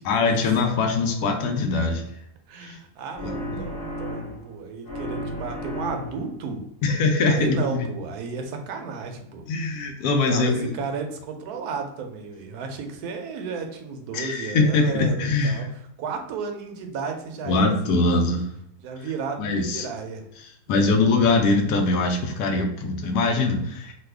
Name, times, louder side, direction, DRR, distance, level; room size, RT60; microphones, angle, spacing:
voice 1, 0.0-2.0 2.6-2.8 3.2-3.6 6.8-7.9 9.5-10.7 14.1-15.7 17.4-18.5 19.0-19.1 19.4-19.9 20.4-24.0, left 3 dB, 80° left, 4 dB, 1.1 m, -22 dB
voice 2, 2.5-6.6 7.3-9.4 10.2-15.6 16.0-18.1 18.8-20.2 20.7-20.9, right 5 dB, 80° right, 5 dB, 1.1 m, -33 dB
sound 1, 3.1-4.5 4.8-6.4, equal, 45° left, 0.9 m, -33 dB
3.2 x 2.1 x 3.3 m, 0.75 s
omnidirectional pair, 1.7 m